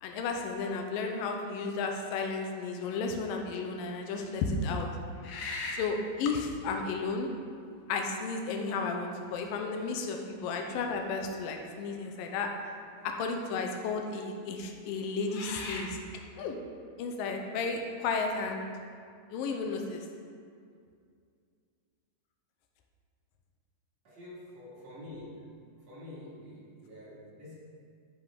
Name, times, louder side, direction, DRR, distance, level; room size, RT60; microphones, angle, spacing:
voice 1, 0.0-4.9 5.7-7.3 7.9-12.5 13.0-16.0 16.4-16.6 17.0-18.7 19.3-20.1, left 4 dB, 80° left, 3 dB, 2.4 m, -33 dB
sound 1, 3.5-3.6 4.1-4.2 5.2-6.0 7.2-7.3 8.2-8.7 9.2-9.3 9.8-10.5 12.2-12.3 12.6-13.2 13.8-14.0 14.9-15.9, left 3 dB, 65° left, 2.0 m, -40 dB
voice 2, 24.0-25.4 25.9-27.5, left 1 dB, 50° right, -9 dB, 3.2 m, -47 dB
13.0 x 5.4 x 3.6 m, 2.3 s
omnidirectional pair, 4.1 m